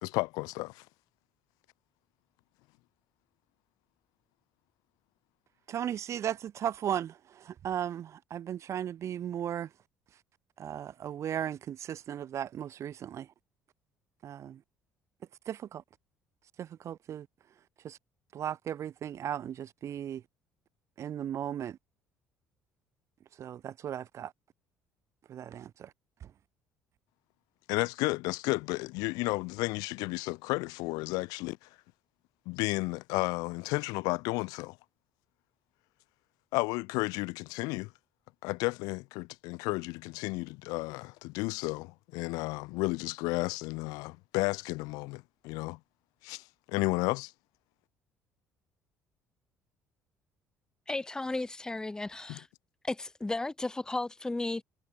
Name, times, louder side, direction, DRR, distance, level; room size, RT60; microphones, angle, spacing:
voice 1, 0.0-0.8 27.7-31.7 32.5-34.8 36.5-37.9 38.4-45.8 46.2-47.3 52.3-52.4, left 25 dB, 60° left, 0.8 m, -32 dB
voice 2, 5.7-9.7 10.6-13.3 14.2-14.6 15.5-15.8 16.6-17.3 17.8-18.0 18.3-20.2 21.0-21.8 23.4-24.3 25.3-25.9 26.2-26.3, right 10 dB, 40° right, 0.5 m, -36 dB
voice 3, 50.9-52.5 52.8-54.6, left 2 dB, 10° left, 0.5 m, -34 dB
figure-of-eight pair, 55°, 7 cm